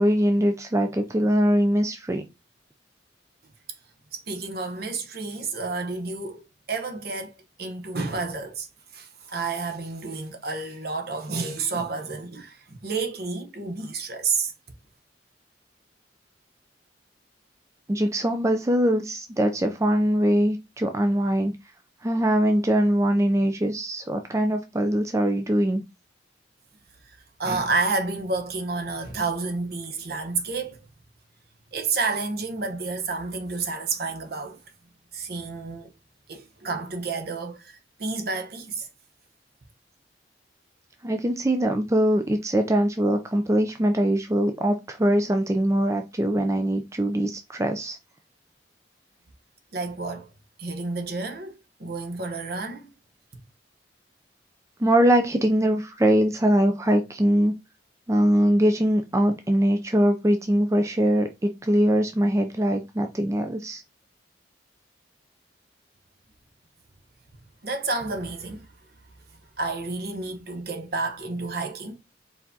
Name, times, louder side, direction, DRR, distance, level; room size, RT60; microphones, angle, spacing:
voice 1, 0.0-2.2 17.9-21.5 22.0-25.8 41.0-48.0 54.8-57.5 58.1-63.8, equal, 15° right, 0.4 m, -22 dB
voice 2, 4.1-8.7 8.9-14.5 27.4-30.8 31.7-34.6 35.1-35.9 36.3-38.9 49.7-50.3 50.6-52.9 67.6-68.7 69.6-72.0, right 3 dB, 55° right, 0.8 m, -30 dB
4.7 x 3.5 x 2.7 m
head